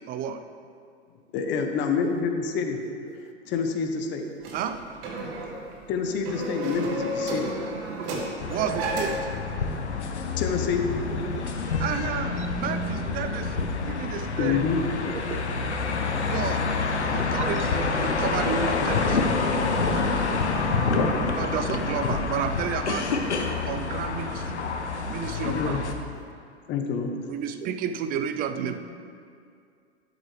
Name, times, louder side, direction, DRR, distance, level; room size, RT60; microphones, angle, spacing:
voice 1, 0.1-0.4 4.5-4.7 8.5-9.2 11.8-14.6 16.2-16.7 17.1-19.3 21.2-23.1 23.7-24.6 25.0-25.8 27.3-28.8, right 8 dB, 25° right, 8 dB, 0.5 m, -31 dB
voice 2, 1.3-2.8 3.5-4.2 5.9-7.5 10.4-10.8 14.4-14.8 20.2-20.7 20.9-21.2 25.4-25.8 26.7-27.2, left 6 dB, 35° left, 5 dB, 1.0 m, -27 dB
sound 1, 4.4-9.4, right 1 dB, 55° right, 2.2 m, -32 dB
sound 2, 8.4-25.9, left 4 dB, 80° left, 1.0 m, -27 dB
voice 3, 11.1-11.4 12.4-12.5 15.1-15.4 15.8-15.9 17.4-17.7 21.6-21.8 23.3-23.7 26.1-26.3 27.6-27.7 28.6-28.7, right 7 dB, 85° right, 6 dB, 0.9 m, -39 dB
Breathing, 15.9-21.0, left 1 dB, 10° left, 2.5 m, -50 dB
12.5 x 7.9 x 3.3 m, 2.3 s
hypercardioid pair, 100°, 34 cm